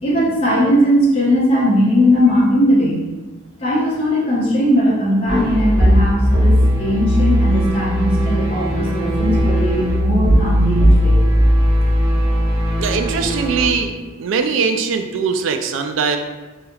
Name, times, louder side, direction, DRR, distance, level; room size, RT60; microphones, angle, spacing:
voice 1, 0.0-3.1 3.6-11.2, equal, 30° left, -8 dB, 0.8 m, -18 dB
sound 1, 5.3-13.7, equal, 20° right, 0.9 m, -17 dB
voice 2, 12.8-13.9 14.2-16.2, right 5 dB, 65° right, 6 dB, 0.3 m, -20 dB
3.4 x 2.8 x 2.3 m, 1.2 s
head